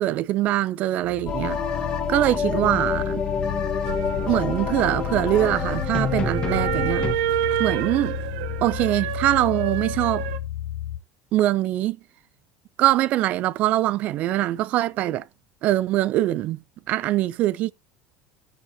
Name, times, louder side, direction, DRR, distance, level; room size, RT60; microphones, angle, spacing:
voice 1, 0.0-1.6 2.1-3.2 4.3-7.1 7.6-8.2 8.6-10.3 11.3-12.0 12.8-15.2 15.6-16.6 16.9-17.7, right 14 dB, 40° right, 0.4 m, -23 dB
sound 1, 1.0-11.0, left 12 dB, 60° left, 0.9 m, -34 dB
sound 2, 1.3-7.1, left 6 dB, 20° left, 1.1 m, -27 dB
sound 3, 3.9-10.4, right 11 dB, 85° right, 0.8 m, -29 dB
16.0 x 7.0 x 2.7 m
cardioid pair, 175°, 4 cm